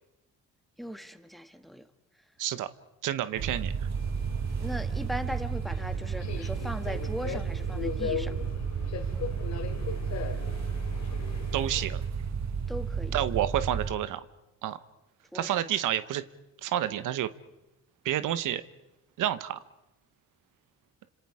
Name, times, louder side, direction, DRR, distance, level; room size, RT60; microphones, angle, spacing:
voice 1, 0.8-1.9 4.6-8.4 12.7-13.2 15.3-15.6, equal, ahead, 9 dB, 1.5 m, -38 dB
voice 2, 2.4-2.7 3.0-3.7 11.5-12.0 13.1-14.2 14.6-14.8 15.3-16.2 16.6-17.3 18.0-18.6 19.2-19.6, right 12 dB, 85° right, 13 dB, 1.1 m, -29 dB
sound 1, 3.4-13.9, right 6 dB, 60° right, 1.5 m, -32 dB
Subway metro underground, 3.9-11.9, left 7 dB, 65° left, 2.7 m, -39 dB
30.0 x 26.5 x 4.9 m, 0.96 s
cardioid pair, 105°, 31 cm